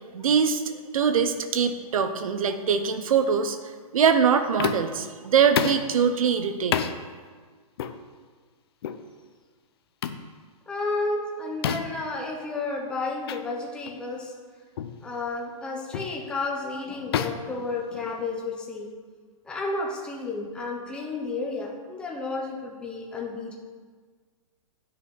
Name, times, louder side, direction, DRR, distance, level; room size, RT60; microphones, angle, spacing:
voice 1, 0.1-3.6 3.9-6.9, right 6 dB, 70° right, 8 dB, 1.0 m, -23 dB
sound 1, 4.6-5.0 5.6-5.9 6.7-7.0 7.8-8.0 8.8-9.0 10.0-10.3 11.6-12.0 13.3-13.4 13.9-14.0 14.8-15.0 15.9-16.2 17.1-18.3, left 9 dB, 45° left, 0.6 m, -29 dB
voice 2, 10.7-14.3 15.0-18.9 19.4-23.6, left 3 dB, 5° left, -1 dB, 0.8 m, -32 dB
10.5 x 6.4 x 4.8 m, 1.5 s
hypercardioid pair, 165°, 19 cm